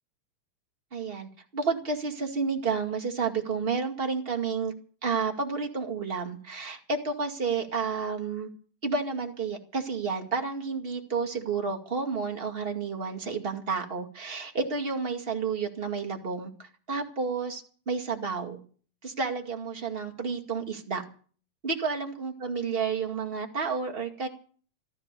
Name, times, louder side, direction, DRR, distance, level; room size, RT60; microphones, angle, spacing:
voice 1, 0.9-4.7 5.0-8.5 8.8-18.6 19.0-21.0 21.6-24.3, right 5 dB, 20° right, 2 dB, 1.7 m, -31 dB
15.0 x 13.5 x 6.7 m, 0.43 s
omnidirectional pair, 3.8 m